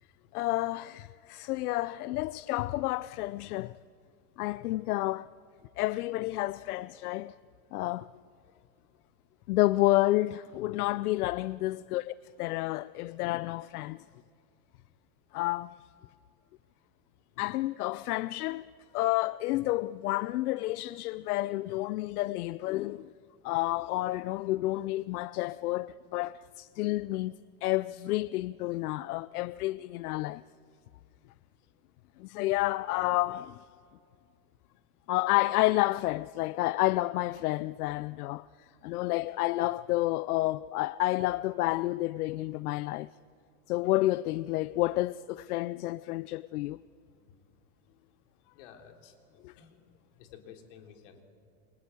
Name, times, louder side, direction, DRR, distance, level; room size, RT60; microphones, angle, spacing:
voice 1, 0.3-3.8 4.4-5.3 5.8-7.4 7.7-8.1 9.5-14.0 15.3-15.7 17.4-18.6 18.9-23.1 23.4-27.3 27.6-30.4 32.2-33.6 35.1-38.4 38.8-43.1 43.7-46.8 49.4-49.5, left 18 dB, 80° left, 0.6 m, -30 dB
voice 2, 48.5-49.1 49.6-49.8 50.2-51.2, left 8 dB, 55° left, 3.7 m, -52 dB
29.5 x 24.0 x 8.3 m
supercardioid pair, 180°, 44 cm